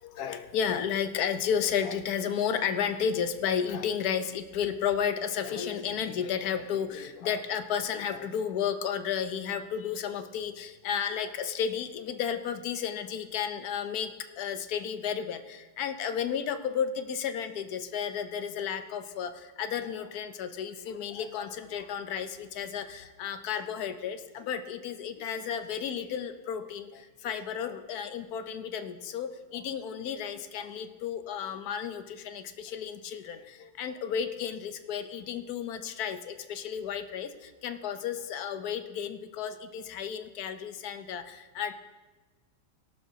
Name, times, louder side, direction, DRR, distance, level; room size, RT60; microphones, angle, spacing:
voice 1, 0.0-14.1 14.4-41.7, left 8 dB, 65° left, 9 dB, 1.1 m, -33 dB
18.0 x 12.0 x 2.8 m, 1.2 s
omnidirectional pair, 2.0 m